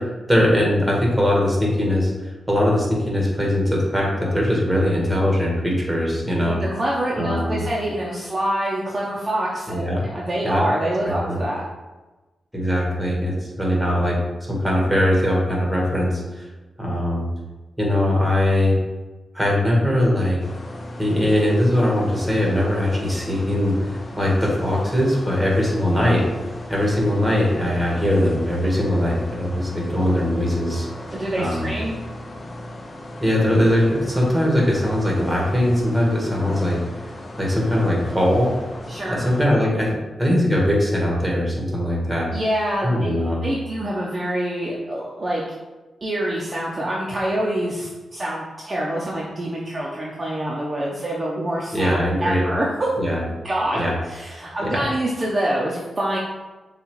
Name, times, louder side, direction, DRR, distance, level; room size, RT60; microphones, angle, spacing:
voice 1, 0.0-6.6 7.2-7.6 9.7-10.0 10.4-10.7 11.2-11.4 12.5-14.2 14.5-16.5 16.8-17.3 17.8-18.8 19.3-20.4 21.0-26.3 26.7-30.9 31.4-31.7 33.2-36.8 37.4-38.6 39.1-42.3 42.8-43.4 51.7-52.5 53.0-53.2 53.7-53.9 54.6-54.9, left 1 dB, 5° right, -3 dB, 1.4 m, -21 dB
voice 2, 6.4-11.6 31.1-31.9 38.9-39.2 42.3-43.1 43.4-45.4 46.0-52.7 53.4-53.8 54.1-56.2, right 1 dB, 25° right, -4 dB, 0.7 m, -26 dB
sound 1, 20.4-39.5, left 1 dB, 35° left, 0.6 m, -36 dB
6.8 x 2.4 x 3.1 m, 1.2 s
cardioid pair, 95°, 0 cm